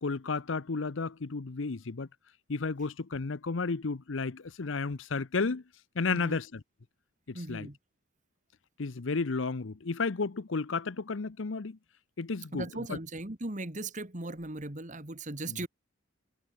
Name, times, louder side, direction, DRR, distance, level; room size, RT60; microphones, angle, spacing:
voice 1, 0.0-2.1 2.5-5.6 6.0-6.6 7.3-7.7 8.8-11.8 12.2-13.0 15.5-15.6, left 4 dB, 65° left, 0.7 m, -32 dB
voice 2, 7.3-7.8 12.5-15.7, right 2 dB, 40° right, 2.3 m, -38 dB
head